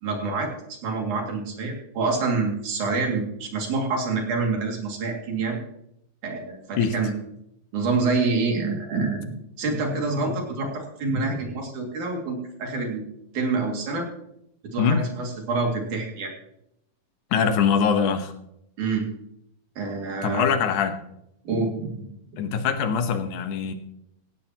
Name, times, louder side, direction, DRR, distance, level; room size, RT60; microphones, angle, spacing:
voice 1, 0.0-5.6 6.2-7.1 7.7-13.0 13.3-14.1 14.6-16.3 18.8-19.1 19.8-20.5 21.5-22.1 22.3-22.4, right 3 dB, 80° right, 1 dB, 3.8 m, -27 dB
voice 2, 17.3-18.3 20.2-21.0 22.4-23.7, left 6 dB, 90° left, 8 dB, 2.6 m, -23 dB
17.5 x 15.0 x 2.9 m, 0.79 s
omnidirectional pair, 3.4 m